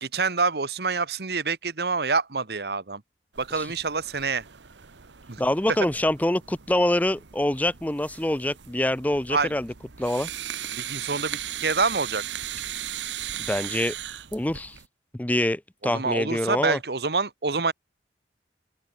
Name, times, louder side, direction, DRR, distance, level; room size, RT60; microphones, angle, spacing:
voice 1, 0.0-3.0 3.4-4.4 5.3-5.4 9.3-9.5 10.7-12.2 15.8-17.7, right 4 dB, 65° right, 1.2 m, -26 dB
sound 1, 3.3-14.9, right 11 dB, 85° right, 1.1 m, -38 dB
voice 2, 5.4-9.7 10.0-10.3 13.5-13.9 14.3-14.8 15.2-16.8, left 1 dB, 10° left, 0.5 m, -25 dB
open air
head